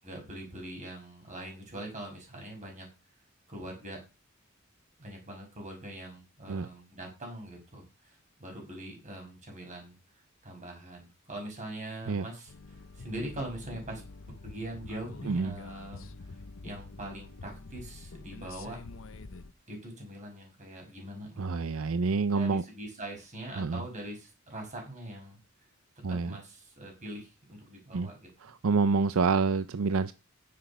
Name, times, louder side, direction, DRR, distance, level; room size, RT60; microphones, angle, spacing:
voice 1, 0.0-2.9 3.5-4.0 5.0-10.0 10.4-14.0 14.4-16.1 16.6-18.8 19.7-21.5 22.3-25.4 26.1-28.2, right 1 dB, 35° right, 1 dB, 5.6 m, -42 dB
sound 1, 12.5-19.5, left 3 dB, 70° left, 0.8 m, -46 dB
voice 2, 15.2-15.6 21.4-22.6 23.6-23.8 26.0-26.4 27.9-28.1 28.4-30.1, right 4 dB, 75° right, 13 dB, 0.5 m, -27 dB
10.0 x 7.5 x 5.5 m, 0.29 s
head